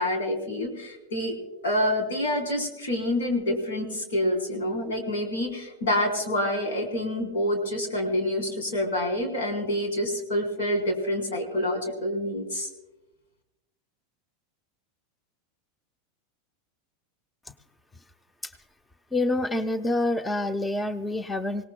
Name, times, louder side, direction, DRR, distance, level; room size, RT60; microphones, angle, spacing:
voice 1, 0.0-1.4 1.6-12.7, left 1 dB, 80° left, 3 dB, 4.0 m, -27 dB
voice 2, 19.1-21.7, left 2 dB, 15° left, 9 dB, 0.7 m, -27 dB
26.0 x 18.0 x 2.3 m, 1.0 s
hypercardioid pair, 95°, 0 cm